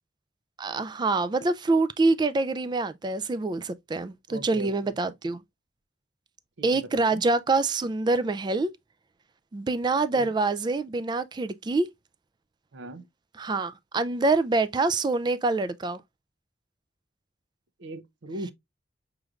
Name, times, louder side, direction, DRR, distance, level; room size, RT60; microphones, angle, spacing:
voice 1, 0.6-5.4 6.6-8.7 9.5-11.9 13.4-16.0, right 3 dB, 25° right, 0.3 m, -25 dB
voice 2, 4.3-4.9 6.6-7.2 10.1-10.3 12.7-13.1 17.8-18.5, right 1 dB, 75° right, 0.6 m, -39 dB
6.2 x 3.1 x 2.3 m
head